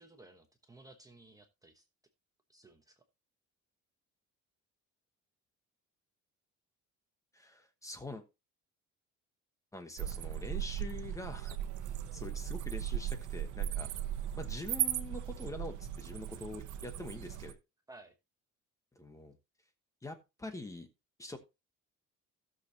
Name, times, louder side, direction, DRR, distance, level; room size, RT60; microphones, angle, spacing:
voice 1, 0.0-1.9 2.5-3.0 17.9-18.1, right 2 dB, 10° right, 4 dB, 1.0 m, -57 dB
voice 2, 7.3-8.2 9.7-13.9 14.4-17.6 19.0-19.4 20.0-20.9 21.2-21.4, left 2 dB, 10° left, 7 dB, 1.1 m, -45 dB
sound 1, 10.0-17.5, right 11 dB, 85° right, 1.0 m, -37 dB
16.0 x 6.6 x 2.8 m, 0.26 s
cardioid pair, 175°, 30 cm